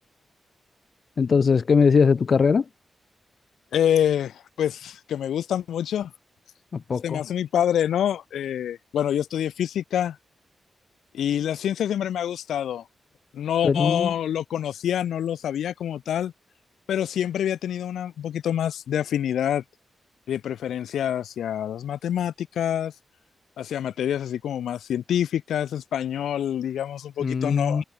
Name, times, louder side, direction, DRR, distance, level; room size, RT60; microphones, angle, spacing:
voice 1, 1.2-2.6 6.7-7.2 13.6-14.1 27.2-27.8, left 5 dB, 60° left, 2.6 m, -20 dB
voice 2, 3.7-6.1 7.0-10.2 11.1-12.8 13.3-16.3 16.9-19.6 20.3-22.9 23.6-27.8, left 10 dB, 85° left, 7.4 m, -26 dB
supercardioid pair, 45°, 0 cm